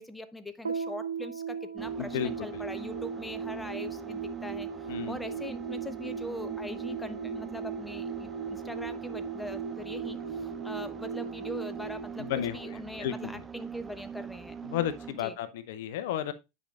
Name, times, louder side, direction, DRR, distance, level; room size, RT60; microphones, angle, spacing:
voice 1, 0.0-14.6 15.2-15.4, left 1 dB, 5° left, 0.7 m, -42 dB
sound 1, 0.6-13.2, right 6 dB, 80° right, 0.6 m, -38 dB
sound 2, 1.8-15.3, right 7 dB, 20° right, 0.4 m, -42 dB
voice 2, 2.0-2.6 4.9-5.2 12.2-12.6 13.0-13.3 14.6-16.3, left 10 dB, 60° left, 0.7 m, -33 dB
10.0 x 5.3 x 2.4 m
figure-of-eight pair, 85°, 0 cm